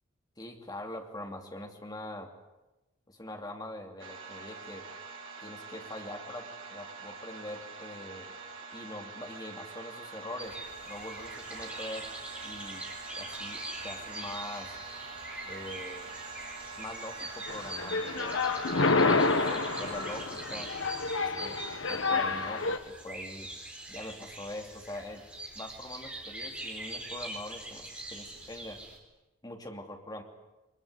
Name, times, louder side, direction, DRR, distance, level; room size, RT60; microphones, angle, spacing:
voice 1, 0.4-2.3 3.1-4.9 5.4-8.4 8.7-10.6 10.9-12.1 12.4-12.8 13.1-14.8 15.4-16.1 16.7-18.4 18.8-20.7 21.2-21.6 21.9-23.5 23.9-25.2 25.5-28.8 29.4-30.2, left 1 dB, 20° left, 3 dB, 2.8 m, -43 dB
sound 1, 4.0-20.3, right 4 dB, 65° right, 3.8 m, -44 dB
sound 2, 10.4-29.0, right 1 dB, 5° right, 4.1 m, -43 dB
sound 3, 17.5-22.8, left 3 dB, 70° left, 1.6 m, -29 dB
23.0 x 22.0 x 9.6 m, 1.0 s
head